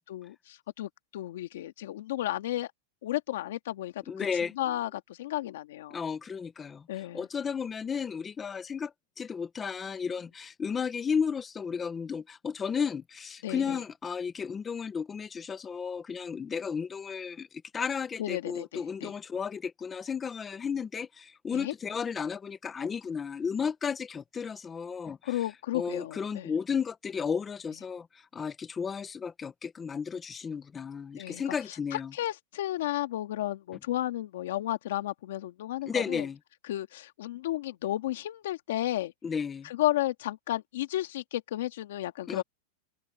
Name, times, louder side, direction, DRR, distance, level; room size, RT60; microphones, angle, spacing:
voice 1, 0.0-2.7 3.0-4.3 4.6-6.0 6.9-7.3 13.4-13.8 18.2-19.1 21.5-21.7 25.2-26.5 31.2-31.5 31.9-36.3 36.7-39.1 39.6-42.4, left 14 dB, 70° left, 1.9 m, -33 dB
voice 2, 4.1-4.5 5.9-17.5 17.7-25.5 25.7-32.1 35.9-36.4 39.2-39.7 42.3-42.4, left 6 dB, 15° left, 0.9 m, -33 dB
open air
supercardioid pair, 160°, 0 cm